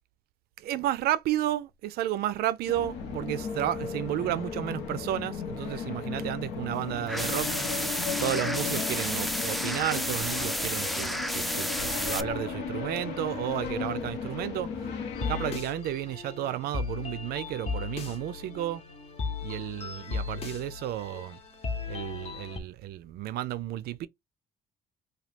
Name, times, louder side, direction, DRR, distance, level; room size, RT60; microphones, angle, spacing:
voice 1, 0.6-7.5 8.2-14.7 15.2-18.8 19.4-21.4 21.9-24.1, right 13 dB, 70° right, 0.4 m, -32 dB
sound 1, 2.7-15.6, left 6 dB, 80° left, 0.8 m, -35 dB
sound 2, 7.1-12.2, equal, ahead, 0.3 m, -31 dB
sound 3, 15.1-22.6, left 5 dB, 40° left, 0.8 m, -36 dB
2.9 x 2.3 x 3.1 m
cardioid pair, 110°, 17 cm